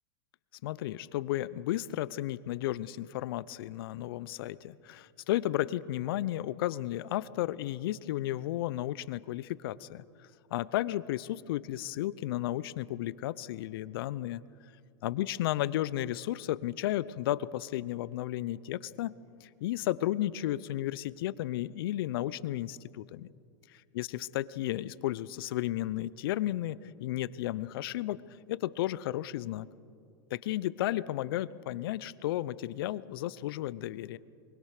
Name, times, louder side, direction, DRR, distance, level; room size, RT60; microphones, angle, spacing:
voice 1, 0.6-10.0 10.5-14.4 15.0-19.1 19.4-23.3 23.9-28.2 28.5-29.7 30.3-34.2, left 14 dB, 65° left, 18 dB, 0.7 m, -33 dB
23.5 x 21.5 x 6.7 m, 2.3 s
hypercardioid pair, 105°, 13 cm